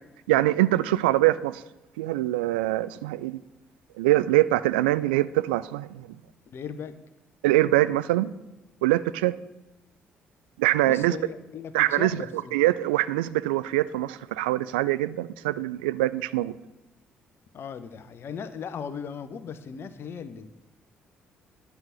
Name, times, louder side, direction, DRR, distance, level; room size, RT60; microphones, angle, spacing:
voice 1, 0.3-1.6 2.0-3.4 4.0-6.1 7.4-8.3 8.8-9.3 10.6-11.2 11.7-12.2 12.5-16.5, right 16 dB, 70° right, 15 dB, 0.4 m, -23 dB
voice 2, 6.5-7.0 10.6-12.6 17.5-20.5, left 7 dB, 45° left, 12 dB, 0.9 m, -38 dB
11.0 x 5.9 x 8.2 m, 0.98 s
figure-of-eight pair, 45°, 5 cm